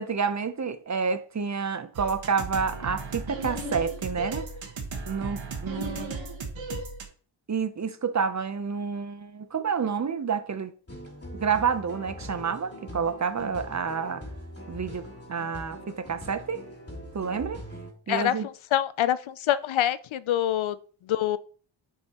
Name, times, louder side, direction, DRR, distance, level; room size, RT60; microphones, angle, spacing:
voice 1, 0.0-4.5 5.1-6.1 7.5-10.7 11.3-14.2 14.7-16.6 17.1-17.6 18.1-18.5, right 6 dB, 35° right, 0.7 m, -29 dB
sound 1, 1.9-7.0, right 3 dB, 75° right, 1.7 m, -35 dB
sound 2, 10.9-17.9, equal, 30° left, 3.1 m, -42 dB
voice 2, 18.1-20.8 21.1-21.4, left 11 dB, 85° left, 0.6 m, -26 dB
9.7 x 5.4 x 3.0 m
wide cardioid pair, 100°, 46 cm